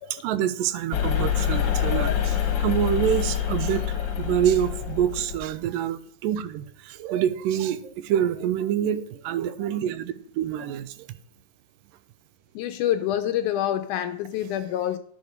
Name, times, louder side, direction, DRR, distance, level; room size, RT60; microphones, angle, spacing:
voice 1, 0.1-10.9, right 10 dB, 90° right, 2.4 m, -26 dB
sound 1, 0.9-5.4, left 9 dB, 50° left, 1.4 m, -26 dB
voice 2, 12.6-15.0, left 11 dB, 80° left, 2.1 m, -26 dB
10.5 x 6.5 x 5.1 m
omnidirectional pair, 3.8 m